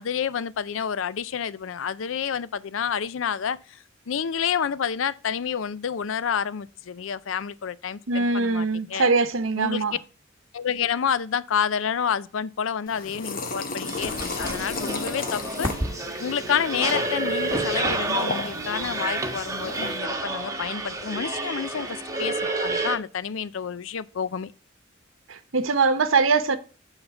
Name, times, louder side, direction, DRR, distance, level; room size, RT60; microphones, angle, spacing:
voice 1, 0.0-3.8 4.1-9.1 9.6-9.8 10.5-15.7 16.2-24.5, left 7 dB, 75° left, 0.5 m, -29 dB
voice 2, 8.1-10.0 25.3-26.6, right 4 dB, 80° right, 0.9 m, -22 dB
sound 1, 12.9-20.0, left 3 dB, 45° left, 1.2 m, -35 dB
sound 2, 13.8-23.0, right 2 dB, 15° right, 1.2 m, -29 dB
8.9 x 4.1 x 7.0 m
head